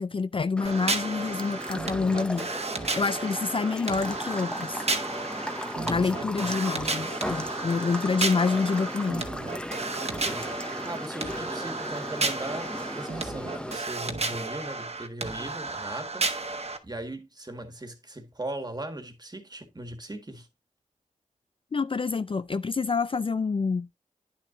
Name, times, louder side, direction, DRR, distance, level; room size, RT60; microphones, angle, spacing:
voice 1, 0.0-2.5 2.9-4.8 5.9-9.3 21.7-23.9, left 4 dB, 40° left, 0.4 m, -27 dB
sound 1, 0.6-13.8, equal, 5° left, 0.8 m, -36 dB
sound 2, 0.6-16.8, right 3 dB, 50° right, 1.2 m, -33 dB
voice 2, 5.8-6.5 10.1-20.5, right 1 dB, 30° right, 1.7 m, -39 dB
10.0 x 6.9 x 2.6 m
wide cardioid pair, 65°, 14 cm